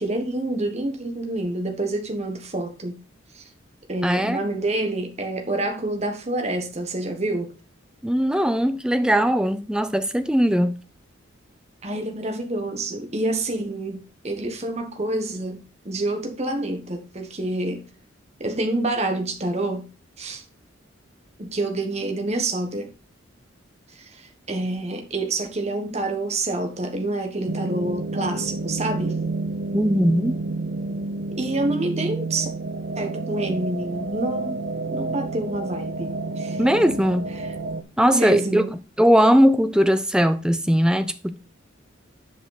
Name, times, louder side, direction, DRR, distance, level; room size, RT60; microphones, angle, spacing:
voice 1, 0.0-3.0 3.3-3.4 3.9-7.5 11.8-17.8 18.4-19.9 20.2-20.4 21.4-22.9 23.9-29.2 31.4-32.5 32.9-36.1 36.4-36.7 37.4-37.5 38.1-38.7, right 2 dB, 30° right, 1.3 m, -27 dB
voice 2, 4.0-4.4 8.0-10.7 29.7-30.4 36.6-37.3 38.0-38.6 39.0-41.4, equal, 5° right, 0.5 m, -19 dB
sound 1, 27.5-37.8, right 3 dB, 50° right, 0.8 m, -30 dB
9.7 x 5.3 x 4.1 m
head